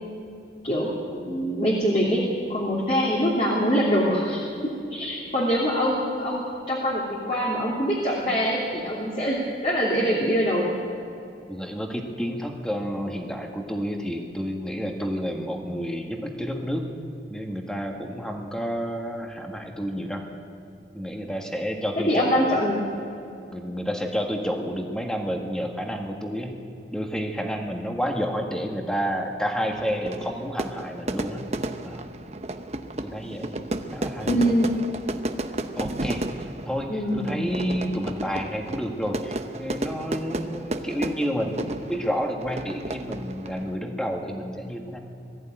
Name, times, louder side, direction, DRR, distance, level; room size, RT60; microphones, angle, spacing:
voice 1, 0.6-2.2 2.5-4.4 4.9-9.4 9.6-10.6 22.1-22.8 23.2-23.4 34.2-34.7 36.9-37.3, equal, 35° left, -5 dB, 3.0 m, -24 dB
voice 2, 11.5-16.9 17.3-20.2 20.9-22.6 23.5-26.6 26.9-31.5 31.8-32.0 33.0-34.4 35.8-45.0, equal, 5° left, 2 dB, 1.8 m, -30 dB
Fire / Fireworks, 29.7-43.8, right 1 dB, 35° right, 0.8 m, -33 dB
20.5 x 14.5 x 9.1 m, 2.7 s
head